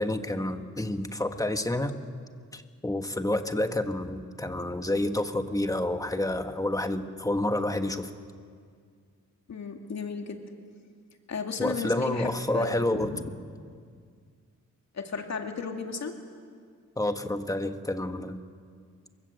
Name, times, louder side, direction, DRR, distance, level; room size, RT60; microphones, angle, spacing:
voice 1, 0.0-2.0 2.5-8.1 11.6-13.1 17.0-18.4, left 1 dB, 10° left, 7 dB, 1.5 m, -29 dB
voice 2, 9.5-10.4 11.3-13.2 14.9-16.2, left 5 dB, 60° left, 4 dB, 2.6 m, -34 dB
26.5 x 23.0 x 8.1 m, 2.1 s
wide cardioid pair, 115°, 30 cm